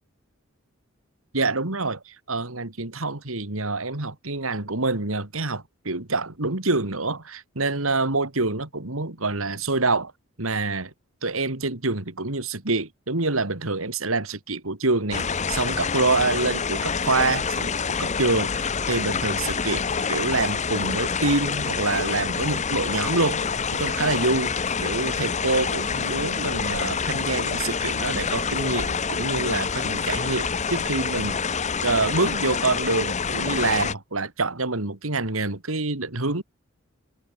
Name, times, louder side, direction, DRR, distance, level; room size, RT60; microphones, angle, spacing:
voice 1, 1.3-10.1 10.4-10.9 11.2-19.8 20.1-24.5 24.8-31.4 31.8-36.4, right 3 dB, 80° right, 2.9 m, -26 dB
sound 1, 15.1-33.9, left 5 dB, 35° left, 0.9 m, -27 dB
head